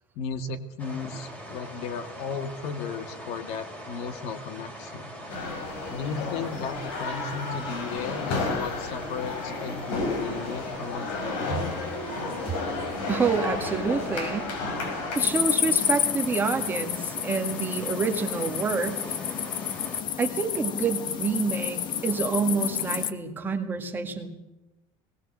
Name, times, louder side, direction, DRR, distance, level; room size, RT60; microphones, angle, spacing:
voice 1, 0.2-5.1 5.9-11.8, left 5 dB, 60° left, 10 dB, 1.9 m, -35 dB
sound 1, 0.8-20.0, equal, 15° left, 3.6 m, -42 dB
sound 2, 5.3-15.2, left 3 dB, 90° left, 6.2 m, -32 dB
voice 2, 13.1-14.5 15.2-19.0 20.2-24.3, right 5 dB, 15° right, 4 dB, 1.9 m, -27 dB
sound 3, 15.2-23.1, left 9 dB, 40° left, 1.2 m, -29 dB
19.0 x 18.5 x 7.7 m, 0.96 s
cardioid pair, 165°, 12 cm